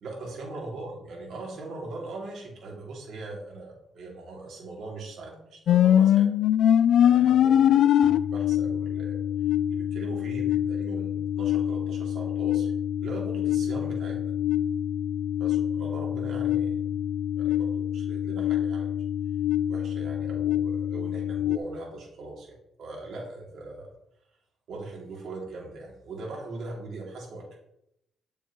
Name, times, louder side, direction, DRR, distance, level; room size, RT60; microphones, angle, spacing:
voice 1, 0.0-6.3 7.0-9.2 9.7-12.7 13.0-14.3 15.4-17.0 17.4-19.0 19.7-23.9 24.7-27.6, right 2 dB, 70° right, -2 dB, 2.7 m, -40 dB
sound 1, 5.7-21.6, left 10 dB, 75° left, 0.3 m, -24 dB
7.8 x 6.9 x 3.1 m, 0.80 s
cardioid pair, 90°, 0 cm